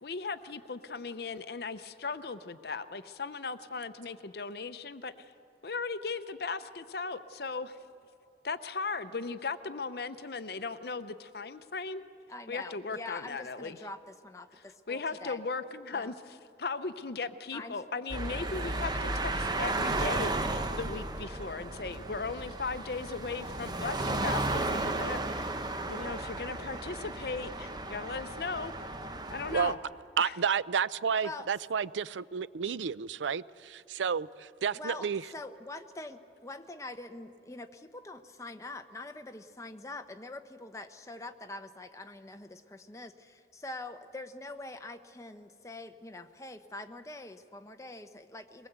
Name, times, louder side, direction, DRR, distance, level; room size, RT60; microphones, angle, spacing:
voice 1, 0.0-5.1 5.6-7.8 8.4-12.0 12.5-13.8 14.9-25.5 25.9-28.7 29.3-29.8 30.2-30.3, left 4 dB, 60° left, 11 dB, 0.7 m, -37 dB
voice 2, 12.3-15.4 15.9-16.1 17.5-17.8 18.9-19.1 19.7-19.9 31.2-31.5 34.7-48.7, left 2 dB, 15° left, 7 dB, 0.8 m, -44 dB
sound 1, 18.1-29.7, right 2 dB, 20° right, 0.9 m, -34 dB
voice 3, 30.2-35.2, right 6 dB, 90° right, 18 dB, 0.5 m, -31 dB
22.5 x 19.5 x 8.1 m, 2.5 s
head